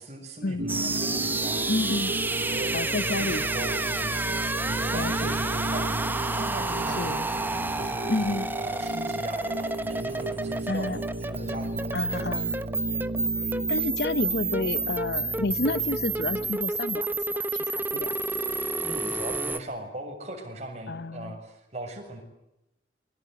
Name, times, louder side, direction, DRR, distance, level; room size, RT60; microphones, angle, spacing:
voice 1, 0.0-1.7 2.3-2.7 3.0-4.2 4.6-7.3 7.7-12.4 18.8-22.2, right 1 dB, 40° right, 3 dB, 7.1 m, -39 dB
sound 1, 0.6-16.5, right 2 dB, 60° right, 1.1 m, -34 dB
sound 2, 0.7-19.6, right 3 dB, 10° right, 1.3 m, -30 dB
voice 2, 1.7-2.1 2.7-3.5 4.9-5.4 7.0-7.3 8.1-8.5 10.7-11.0 11.9-12.5 13.7-18.2 20.9-21.4, left 2 dB, 65° left, 16 dB, 0.9 m, -30 dB
28.5 x 23.0 x 8.1 m, 0.86 s
head